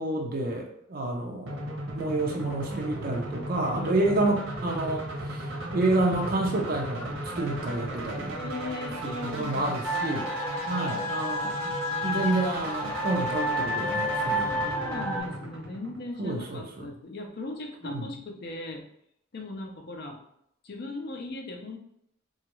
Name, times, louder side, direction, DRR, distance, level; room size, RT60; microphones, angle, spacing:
voice 1, 0.0-1.6 2.0-5.5 5.7-8.4 9.0-10.3 10.6-11.7 12.0-14.7 16.2-16.9 17.8-18.1, right 2 dB, 50° right, 0 dB, 0.5 m, -29 dB
sound 1, 1.5-16.4, right 1 dB, 90° right, 0.7 m, -36 dB
voice 2, 8.3-10.2 14.6-18.8 19.3-20.2 20.6-21.8, left 2 dB, 55° left, 3 dB, 0.5 m, -38 dB
sound 2, 9.8-15.2, equal, 5° left, 0.8 m, -30 dB
2.9 x 2.3 x 3.0 m, 0.73 s
head